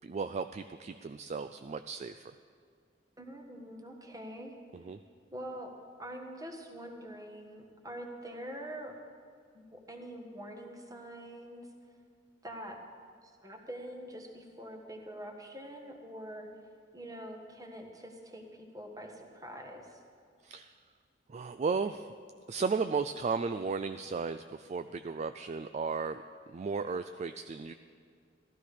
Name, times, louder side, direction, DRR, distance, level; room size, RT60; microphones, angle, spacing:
voice 1, 0.0-2.3 4.7-5.0 20.4-20.7 21.3-22.1 22.5-26.2 26.5-27.7, right 4 dB, 40° right, 9 dB, 0.3 m, -35 dB
voice 2, 3.2-4.6 5.3-5.7 6.0-8.9 9.5-11.7 12.4-12.8 13.4-16.5 16.9-20.0, right 1 dB, 20° right, 2 dB, 1.5 m, -45 dB
15.0 x 13.0 x 5.0 m, 2.2 s
head